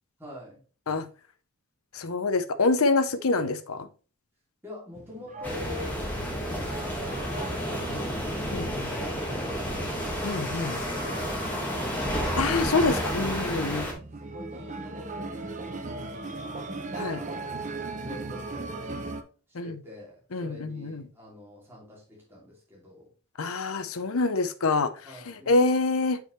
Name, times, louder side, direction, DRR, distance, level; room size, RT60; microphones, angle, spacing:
voice 1, 0.2-0.6 4.6-8.4 8.7-12.4 13.7-16.6 16.9-17.7 18.0-19.2 19.5-23.1 25.0-25.5, left 1 dB, 10° right, 2.8 m, -46 dB
voice 2, 1.9-3.9 8.5-8.9 10.2-10.7 12.4-13.8 17.0-17.2 19.5-19.7 20.3-21.0 23.4-24.9 25.5-26.2, left 3 dB, 75° left, 0.7 m, -26 dB
sound 1, 5.0-19.2, right 2 dB, 35° right, 0.7 m, -39 dB
sound 2, 5.4-13.9, equal, 5° left, 1.7 m, -31 dB
8.3 x 4.8 x 3.2 m
head